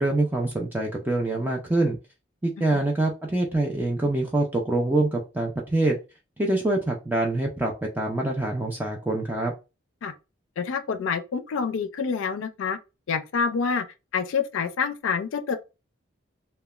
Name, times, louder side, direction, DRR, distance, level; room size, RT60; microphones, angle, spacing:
voice 1, 0.0-2.0 2.4-6.0 6.4-9.5, right 2 dB, 10° right, 0.4 m, -25 dB
voice 2, 10.6-12.8 13.1-13.9 14.1-15.6, left 5 dB, 85° left, 0.4 m, -27 dB
3.1 x 2.1 x 2.3 m
head